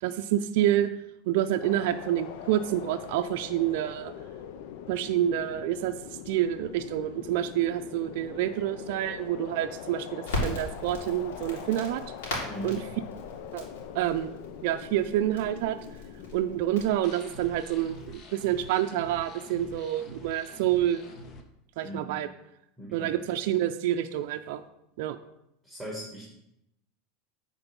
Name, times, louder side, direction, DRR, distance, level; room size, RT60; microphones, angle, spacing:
voice 1, 0.0-0.9 1.3-4.1 4.9-5.9 6.3-12.0 12.6-12.8 13.5-13.7 13.9-14.3 14.6-15.8 16.3-21.0 21.8-22.3 22.9-24.6 25.0-25.2, right 12 dB, 65° right, 6 dB, 0.5 m, -28 dB
sound 1, 1.6-16.9, left 9 dB, 65° left, 0.7 m, -43 dB
Crackle, 10.2-18.2, left 2 dB, 85° left, 3.1 m, -39 dB
voice 2, 12.4-12.8 21.8-22.2 22.8-23.2 25.6-26.3, equal, ahead, -4 dB, 2.3 m, -39 dB
sound 2, 17.0-21.4, left 1 dB, 35° left, 1.2 m, -46 dB
8.9 x 4.5 x 5.4 m, 0.81 s
supercardioid pair, 125°, 0 cm